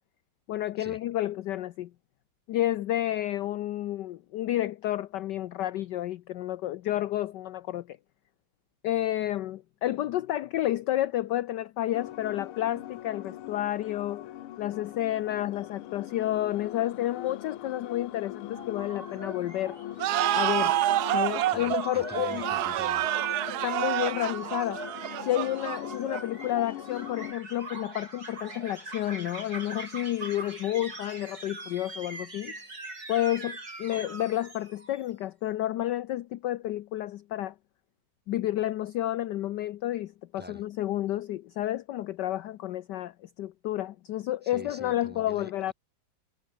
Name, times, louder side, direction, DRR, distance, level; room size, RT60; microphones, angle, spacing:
voice 1, 0.5-1.9 2.5-8.0 8.8-14.3 14.6-19.8 20.3-20.7 21.1-22.5 23.6-24.8 25.2-32.6 33.1-37.5 38.3-45.7, left 13 dB, 70° left, 1.1 m, -30 dB
sound 1, 11.9-27.3, left 13 dB, 90° left, 1.8 m, -42 dB
sound 2, 18.5-35.0, right 2 dB, 45° right, 6.6 m, -42 dB
sound 3, 20.0-26.4, right 15 dB, 80° right, 0.8 m, -28 dB
voice 2, 21.5-23.1 40.4-40.6 44.4-45.7, equal, 5° right, 2.8 m, -46 dB
omnidirectional pair, 2.3 m